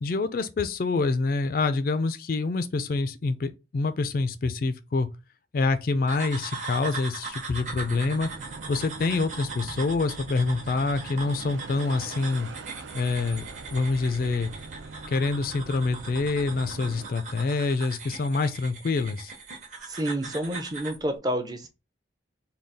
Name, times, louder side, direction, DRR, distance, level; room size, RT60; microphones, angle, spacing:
voice 1, 0.0-5.1 5.5-8.3 8.7-12.5 12.9-13.4 13.7-14.5 15.1-19.3, left 3 dB, 50° left, 0.3 m, -26 dB
sound 1, 6.1-21.0, right 4 dB, 40° right, 0.8 m, -40 dB
sound 2, 7.5-17.1, right 3 dB, 85° right, 0.5 m, -43 dB
voice 2, 19.8-21.7, right 1 dB, 20° right, 0.5 m, -29 dB
3.8 x 2.3 x 3.4 m
head